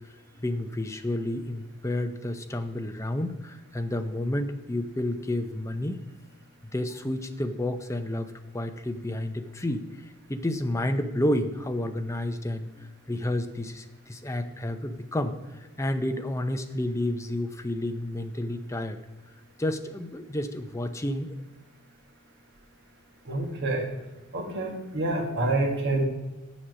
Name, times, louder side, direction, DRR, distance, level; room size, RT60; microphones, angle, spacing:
voice 1, 0.4-6.0 6.7-9.8 10.3-19.0 19.6-21.4, left 1 dB, 15° left, 7 dB, 0.6 m, -30 dB
voice 2, 23.3-23.9 24.3-26.1, right 2 dB, 55° right, 2 dB, 1.7 m, -27 dB
8.7 x 7.2 x 6.3 m, 1.1 s
head